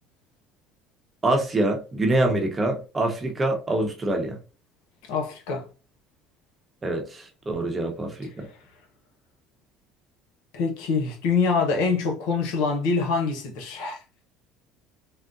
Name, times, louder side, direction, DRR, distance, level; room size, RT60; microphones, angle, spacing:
voice 1, 1.2-4.4 6.8-8.5, right 2 dB, 20° right, 0.8 m, -25 dB
voice 2, 5.0-5.7 10.5-14.0, left 4 dB, 80° left, 0.8 m, -25 dB
3.7 x 2.1 x 2.5 m
supercardioid pair, 105°, 0 cm